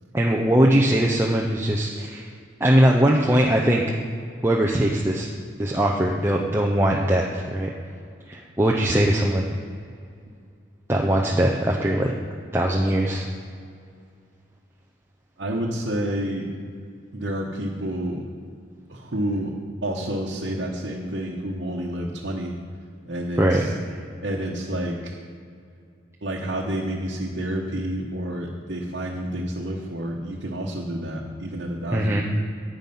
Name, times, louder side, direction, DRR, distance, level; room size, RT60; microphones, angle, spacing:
voice 1, 0.1-2.2 2.6-3.8 4.4-5.3 5.6-7.7 8.3-9.5 10.9-12.1 12.5-13.3 23.4-23.6 31.9-32.2, right 1 dB, 15° right, -1 dB, 0.6 m, -20 dB
voice 2, 15.4-16.5 17.1-18.3 18.9-19.5 19.8-22.5 23.1-23.7 24.2-25.2 26.2-32.2, right 1 dB, 65° right, -4 dB, 1.1 m, -29 dB
9.5 x 8.9 x 5.5 m, 2.3 s
head